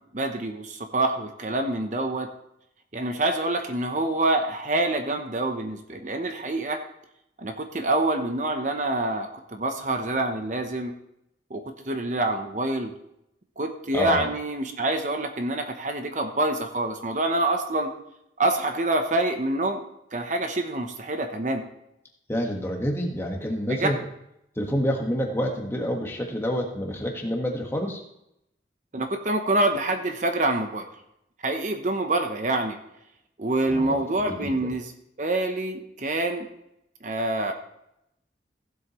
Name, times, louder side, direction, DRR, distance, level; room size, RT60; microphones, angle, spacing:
voice 1, 0.1-2.3 2.9-6.8 7.4-10.9 11.5-12.9 13.6-17.9 18.4-19.8 20.1-21.6 23.7-23.9 28.9-30.9 31.4-32.8 33.4-36.5 37.0-37.5, right 2 dB, 45° right, 5 dB, 0.9 m, -26 dB
voice 2, 13.9-14.2 22.3-24.0 24.5-28.0 33.7-34.7, equal, 15° left, 1 dB, 1.5 m, -28 dB
15.5 x 7.9 x 3.1 m, 0.81 s
head